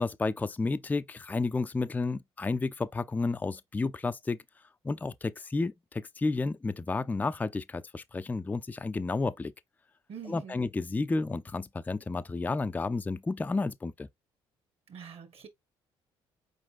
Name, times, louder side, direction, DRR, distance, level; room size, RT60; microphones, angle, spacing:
voice 1, 0.0-4.4 4.8-9.5 10.3-14.1, left 3 dB, 10° left, 0.4 m, -31 dB
voice 2, 10.1-10.6 14.9-15.5, right 7 dB, 45° right, 1.2 m, -45 dB
4.6 x 3.8 x 2.4 m
hypercardioid pair, 50°, 14 cm